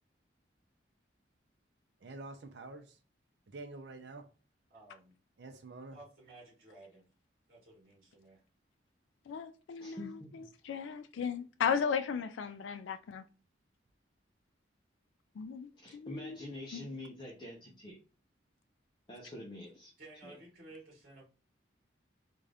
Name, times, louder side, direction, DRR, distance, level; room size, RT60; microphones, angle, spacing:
voice 1, 2.0-3.0 3.5-4.2 5.4-6.0, right 3 dB, 65° right, 0.5 m, -47 dB
voice 2, 4.7-5.1 5.9-7.0 7.5-8.4 20.0-21.2, right 2 dB, 45° right, 1.6 m, -55 dB
voice 3, 9.3-13.2 15.4-16.4 16.7-16.9, left 6 dB, 80° left, 0.3 m, -36 dB
voice 4, 9.8-10.5 15.8-18.0 19.1-19.9 20.2-20.4, left 1 dB, 25° left, 0.7 m, -46 dB
3.7 x 2.5 x 3.3 m
head